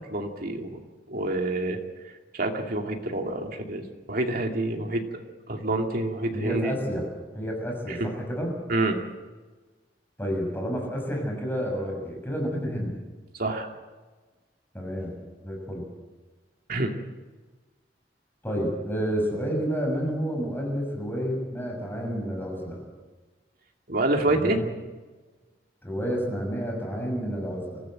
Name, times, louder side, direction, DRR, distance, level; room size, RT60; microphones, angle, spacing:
voice 1, 0.1-0.8 1.1-1.8 2.3-6.7 8.0-8.1 8.7-9.0 13.4-13.7 16.7-16.9 23.9-24.6, right 2 dB, 55° right, 3 dB, 2.6 m, -27 dB
voice 2, 6.3-7.1 7.3-8.6 10.2-12.9 14.7-15.1 15.4-15.9 18.4-22.8 24.2-24.7 25.8-27.8, equal, 15° left, 0 dB, 6.3 m, -30 dB
24.0 x 15.0 x 7.9 m, 1.3 s
head